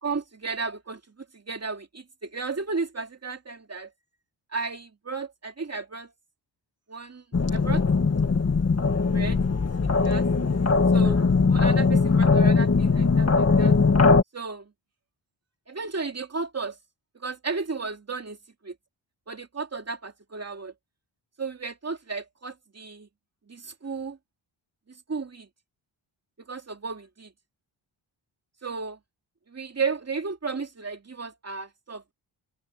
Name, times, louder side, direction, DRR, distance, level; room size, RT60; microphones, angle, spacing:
voice 1, 0.0-3.9 4.5-6.1 6.9-7.2 7.5-7.8 9.1-9.4 10.0-10.3 10.9-11.2 11.5-13.8 14.3-14.7 15.7-16.8 17.2-18.4 19.3-20.7 21.4-23.1 23.5-24.2 25.1-25.5 26.5-27.3 28.6-29.0 29.5-32.1, right 4 dB, 35° right, 2.8 m, -33 dB
sound 1, 7.3-14.2, left 4 dB, 35° left, 1.9 m, -20 dB
open air
wide cardioid pair, 120°, 46 cm